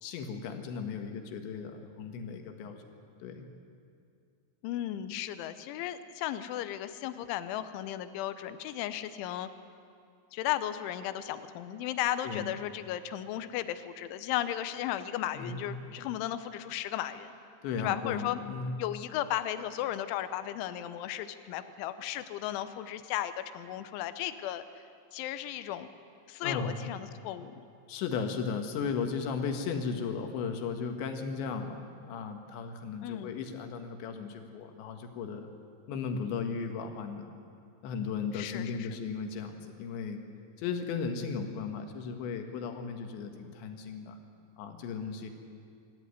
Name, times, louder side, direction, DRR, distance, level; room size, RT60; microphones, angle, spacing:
voice 1, 0.0-2.8 3.2-3.5 12.2-12.5 15.4-15.9 17.6-18.8 26.4-26.9 27.9-35.5 35.9-37.3 37.8-40.2 40.6-44.2 44.6-45.3, left 5 dB, 75° left, 5 dB, 3.7 m, -36 dB
voice 2, 4.6-9.5 10.3-17.3 17.8-18.4 18.8-24.6 25.1-25.9 26.3-27.6 33.0-33.3 38.3-39.0, left 12 dB, 90° left, 12 dB, 3.2 m, -35 dB
25.5 x 13.5 x 9.7 m, 2.4 s
omnidirectional pair, 5.4 m